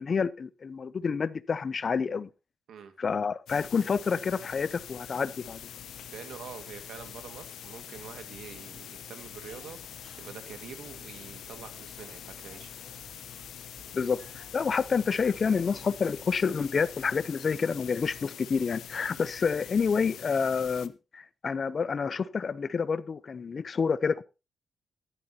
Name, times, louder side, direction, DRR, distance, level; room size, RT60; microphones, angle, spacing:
voice 1, 0.0-2.3 3.0-5.7 13.9-24.2, left 5 dB, 40° left, 0.7 m, -28 dB
sound 1, 3.5-20.9, left 9 dB, 85° left, 0.9 m, -45 dB
voice 2, 6.1-9.8 10.2-12.8, right 7 dB, 80° right, 1.9 m, -45 dB
sound 2, 9.5-17.2, right 1 dB, 30° right, 6.8 m, -57 dB
15.0 x 12.5 x 2.9 m
cardioid pair, 120°, 0 cm